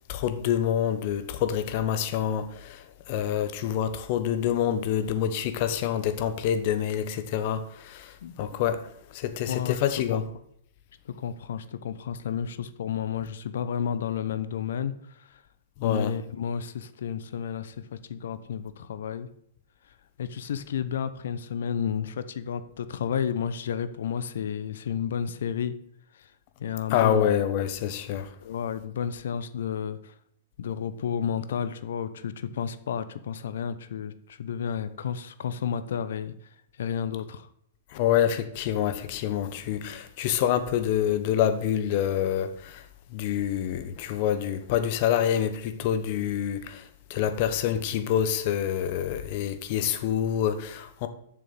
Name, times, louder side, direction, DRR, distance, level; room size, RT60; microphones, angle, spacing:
voice 1, 0.1-10.2 15.8-16.1 26.9-28.3 37.9-51.1, left 10 dB, 50° left, 1.2 m, -27 dB
voice 2, 9.5-9.8 10.1-10.2 11.1-15.4 15.8-17.8 18.1-19.3 20.2-25.7 26.2-26.3 26.6-27.3 28.4-30.1 30.6-36.3 36.8-37.5, left 8 dB, 70° left, 0.8 m, -31 dB
7.3 x 6.8 x 6.7 m
hypercardioid pair, 115°, 0 cm